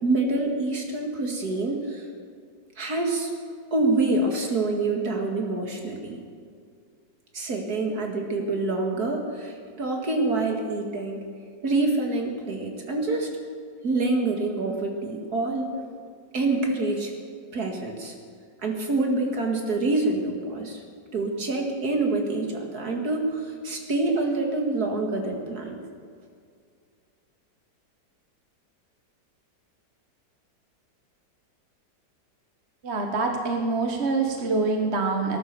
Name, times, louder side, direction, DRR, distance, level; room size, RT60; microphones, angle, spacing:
voice 1, 0.0-2.0 2.8-3.3 3.7-6.2 7.3-11.2 11.6-13.3 13.8-15.7 16.3-17.1 17.5-18.1 18.6-20.8 21.1-25.8, right 2 dB, 60° right, 2 dB, 2.4 m, -26 dB
voice 2, 32.8-35.4, right 3 dB, 40° right, 3 dB, 1.4 m, -25 dB
18.5 x 11.0 x 6.9 m, 2.2 s
omnidirectional pair, 1.9 m